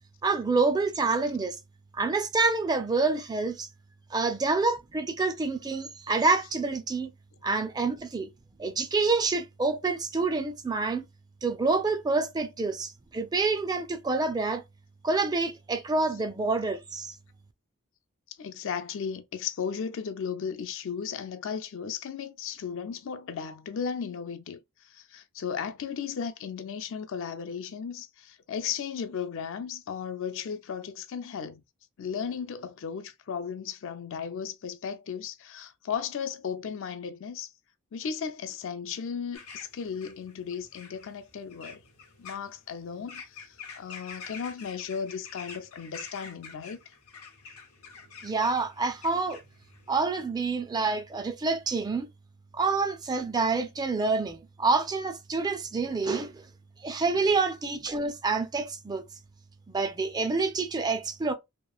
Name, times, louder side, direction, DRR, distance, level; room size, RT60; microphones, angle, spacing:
voice 1, 0.2-1.6 1.9-3.7 4.1-7.1 7.4-8.3 8.6-11.0 11.4-14.6 15.0-17.2 48.2-49.4 49.9-52.1 52.5-56.4 56.8-59.0 59.7-61.3, right 3 dB, 20° right, 0.3 m, -27 dB
voice 2, 18.3-31.6 32.0-37.5 37.9-41.8 42.2-46.8, left 7 dB, 65° left, 0.4 m, -35 dB
sound 1, 39.3-50.0, left 5 dB, 85° left, 0.8 m, -47 dB
2.9 x 2.4 x 2.3 m
head